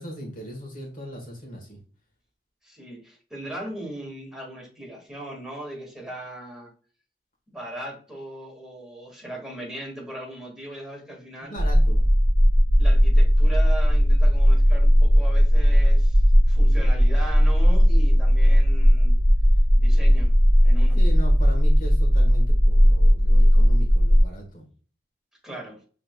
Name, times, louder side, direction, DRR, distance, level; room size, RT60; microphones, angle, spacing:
voice 1, 0.0-1.8 11.5-12.1 21.0-24.6, right 1 dB, 50° left, 1 dB, 1.5 m, -38 dB
voice 2, 2.6-6.7 7.5-11.6 12.8-19.2 19.8-20.3 20.6-21.0 25.4-25.8, right 1 dB, 5° right, -3 dB, 1.7 m, -38 dB
sound 1, 11.6-24.2, equal, 70° left, 0.8 m, -17 dB
5.9 x 3.3 x 2.2 m, 0.41 s
head